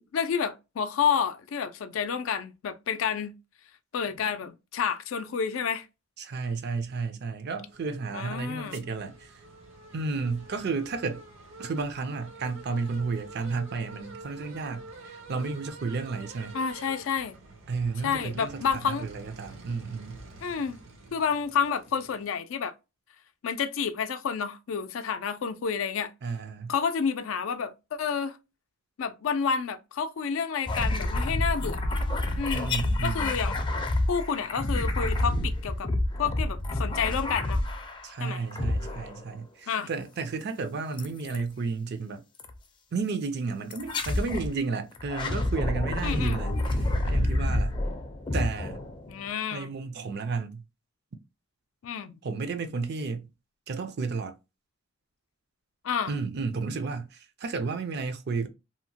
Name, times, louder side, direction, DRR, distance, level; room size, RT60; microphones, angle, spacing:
voice 1, 0.1-3.3 3.9-5.9 8.1-8.8 16.5-17.4 18.0-19.1 20.4-20.8 21.1-22.7 23.4-26.1 26.7-28.4 29.0-31.8 32.4-32.7 33.0-33.6 34.1-35.9 36.2-37.6 38.2-38.4 39.7-39.9 46.0-46.4 49.1-49.7 51.8-52.2 55.8-56.1, left 6 dB, 80° left, 0.4 m, -29 dB
voice 2, 6.2-9.4 9.9-11.3 11.6-16.5 17.7-20.2 26.2-26.7 32.5-33.4 38.0-42.2 42.9-47.8 48.3-48.8 49.5-50.6 52.2-53.3 53.7-54.3 56.1-58.5, right 4 dB, 55° right, 0.5 m, -32 dB
sound 1, 7.7-22.3, right 2 dB, 80° right, 0.8 m, -48 dB
sound 2, 30.7-38.1 38.5-39.3 41.0-41.4 42.4-42.6 43.7-44.5 44.9-49.3, left 1 dB, 25° left, 0.4 m, -28 dB
2.8 x 2.1 x 2.7 m
head